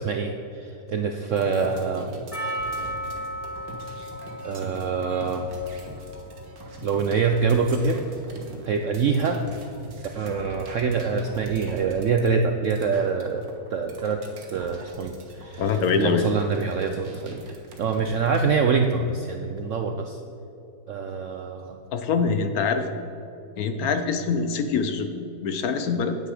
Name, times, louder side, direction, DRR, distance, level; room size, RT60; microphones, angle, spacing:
voice 1, 0.0-2.1 4.4-5.5 6.8-8.0 8.7-9.4 10.1-17.4 17.8-20.2 20.9-21.8, right 5 dB, 70° right, 5 dB, 0.7 m, -25 dB
sound 1, 1.4-18.5, right 2 dB, 85° right, 2.0 m, -42 dB
Percussion, 2.3-7.3, equal, 20° left, 1.8 m, -36 dB
voice 2, 15.6-16.3 21.9-22.9 23.6-26.2, left 5 dB, 65° left, 7 dB, 1.0 m, -24 dB
9.7 x 8.9 x 4.9 m, 2.9 s
omnidirectional pair, 1.9 m